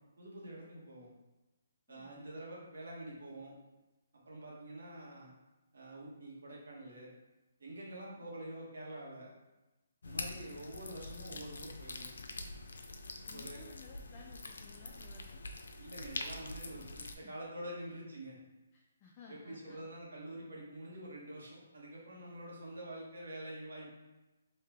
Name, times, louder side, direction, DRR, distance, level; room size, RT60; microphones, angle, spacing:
voice 1, 0.2-1.1 1.9-3.6 4.2-5.3 5.7-7.1 7.6-9.3 10.0-12.1 13.3-13.6 15.8-18.4 19.3-24.0, right 1 dB, 75° right, -4 dB, 1.4 m, -47 dB
voice 2, 1.9-2.2 8.0-8.3 10.3-10.6 13.3-15.5 17.2-17.3 18.7-19.8, left 4 dB, 20° left, -2 dB, 0.3 m, -57 dB
sound 1, 10.0-17.1, left 2 dB, 80° left, 0.5 m, -45 dB
3.2 x 2.7 x 3.5 m, 1.1 s
hypercardioid pair, 170°, 0 cm